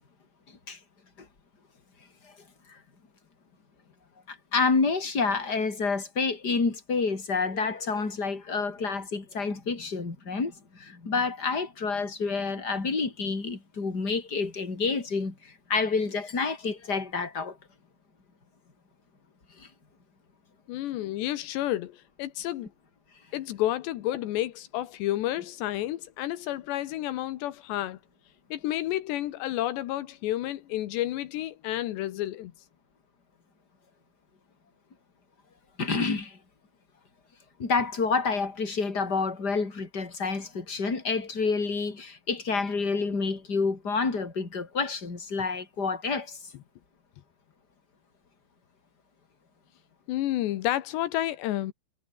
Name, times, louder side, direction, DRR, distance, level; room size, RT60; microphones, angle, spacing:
voice 1, 4.3-17.6 19.6-19.7 35.8-36.4 37.6-46.4, left 4 dB, 25° left, 4.7 m, -28 dB
voice 2, 20.7-22.7 23.3-28.0 28.5-32.5 50.1-51.7, left 14 dB, 85° left, 3.5 m, -30 dB
omnidirectional pair, 5.0 m